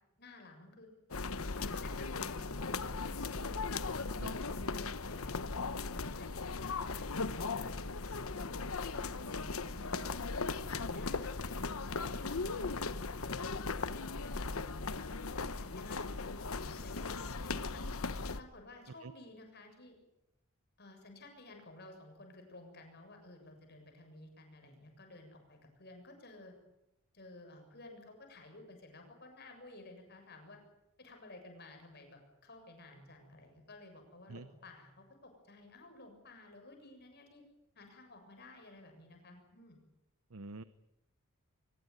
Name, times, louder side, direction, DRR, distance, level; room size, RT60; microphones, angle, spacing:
voice 1, 0.2-0.9 1.6-5.5 5.9-7.7 8.3-10.1 10.8-17.8 18.4-19.9 20.8-26.5 27.1-30.6 31.0-37.4 37.8-39.8, left 2 dB, 50° left, 4 dB, 7.3 m, -54 dB
sound 1, 1.1-18.4, left 4 dB, 80° left, 1.1 m, -38 dB
voice 2, 40.3-40.6, right 3 dB, 85° right, 14 dB, 0.9 m, -46 dB
23.5 x 21.0 x 9.6 m, 0.87 s
head